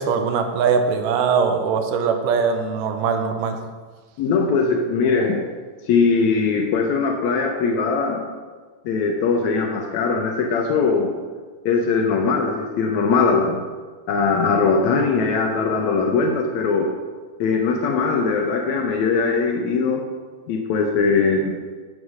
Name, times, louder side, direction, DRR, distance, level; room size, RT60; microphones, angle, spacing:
voice 1, 0.0-3.6, right 6 dB, 85° right, 6 dB, 2.2 m, -21 dB
voice 2, 4.2-5.4 5.9-8.2 8.9-11.1 11.7-13.6 14.1-16.9 17.4-20.0 20.5-21.6, left 4 dB, 80° left, 2 dB, 1.8 m, -20 dB
7.4 x 6.2 x 4.9 m, 1.4 s
omnidirectional pair, 3.8 m